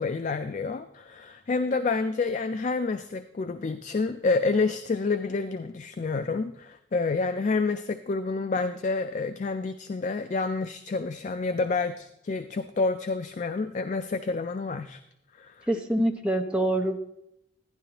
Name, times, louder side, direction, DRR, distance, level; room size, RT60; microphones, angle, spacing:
voice 1, 0.0-15.0 15.4-15.7, left 3 dB, 40° left, 10 dB, 0.3 m, -28 dB
voice 2, 15.7-17.0, right 1 dB, 5° right, 3 dB, 0.7 m, -25 dB
11.0 x 11.0 x 2.9 m, 0.81 s
head